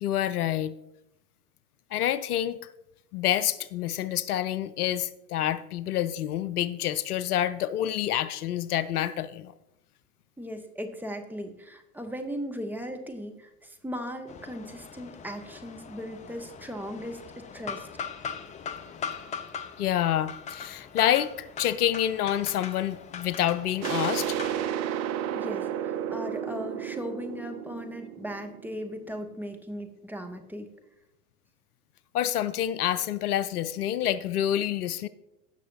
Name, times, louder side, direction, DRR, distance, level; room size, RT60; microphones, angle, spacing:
voice 1, 0.0-0.7 1.9-2.6 3.1-9.5 19.8-24.4 32.1-35.1, left 11 dB, 70° left, 16 dB, 0.6 m, -27 dB
voice 2, 10.4-17.9 25.3-30.7, equal, 5° right, 4 dB, 1.0 m, -38 dB
sound 1, 14.3-24.7, left 6 dB, 15° left, 0.5 m, -41 dB
sound 2, 23.8-29.3, right 10 dB, 35° right, 0.7 m, -32 dB
16.5 x 6.5 x 2.8 m, 0.85 s
figure-of-eight pair, 90°, 47 cm